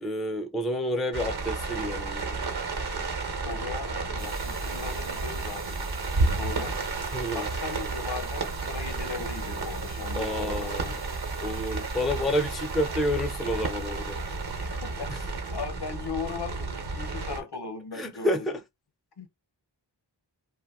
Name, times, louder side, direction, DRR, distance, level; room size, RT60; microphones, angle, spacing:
voice 1, 0.0-2.4 7.1-7.5 10.1-11.0 11.4-14.2 15.1-15.2 17.9-18.6, equal, ahead, 0.4 m, -29 dB
sound 1, 1.1-17.4, right 3 dB, 55° right, 1.0 m, -32 dB
voice 2, 3.4-5.9 6.2-6.8 7.3-11.0 14.5-18.5 19.2-19.3, left 5 dB, 60° left, 0.8 m, -38 dB
sound 2, 4.2-15.4, right 5 dB, 80° right, 0.7 m, -48 dB
2.5 x 2.2 x 3.5 m
wide cardioid pair, 70°, 44 cm